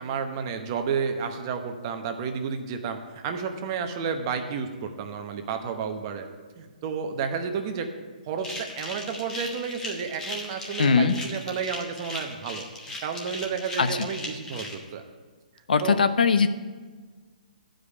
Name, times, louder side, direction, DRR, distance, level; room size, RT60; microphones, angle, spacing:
voice 1, 0.0-6.3 6.6-7.9 8.3-12.6 13.0-15.0 15.8-16.0, right 6 dB, 30° right, 6 dB, 0.9 m, -31 dB
sound 1, 8.4-14.7, left 2 dB, 10° left, 1.1 m, -37 dB
voice 2, 10.8-11.2 13.8-14.1 15.7-16.5, left 5 dB, 80° left, 11 dB, 0.8 m, -20 dB
11.0 x 5.2 x 8.4 m, 1.4 s
hypercardioid pair, 165°, 5 cm